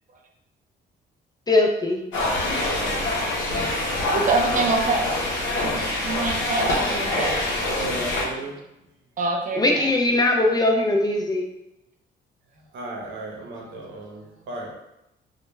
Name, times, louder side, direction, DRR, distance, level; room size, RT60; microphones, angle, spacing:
voice 1, 1.5-2.0 9.5-11.5, left 2 dB, 20° left, 0.3 m, -20 dB
sound 1, 2.1-8.2, left 1 dB, 75° left, 0.7 m, -25 dB
voice 2, 3.7-5.2 5.5-7.5 9.2-9.9, right 3 dB, 40° right, 0.5 m, -26 dB
voice 3, 7.8-8.5 12.7-14.2 14.5-14.7, right 1 dB, 75° right, 0.7 m, -34 dB
2.2 x 2.2 x 3.0 m
cardioid pair, 90°, 20 cm